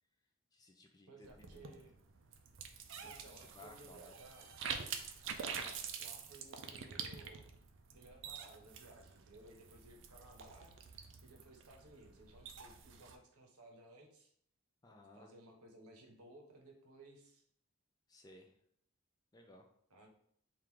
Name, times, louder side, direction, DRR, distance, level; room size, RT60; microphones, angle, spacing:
voice 1, 0.5-1.8 2.9-4.1 14.8-15.3 18.1-18.6 19.3-19.7, left 1 dB, 15° left, 2 dB, 0.4 m, -59 dB
voice 2, 1.1-2.0 3.0-4.5 5.5-7.5 7.9-14.3 15.1-17.4 19.9-20.1, right 1 dB, 85° right, 2 dB, 0.9 m, -59 dB
sound 1, 1.2-13.2, right 6 dB, 55° right, 0.4 m, -47 dB
3.6 x 2.4 x 4.6 m, 0.68 s
head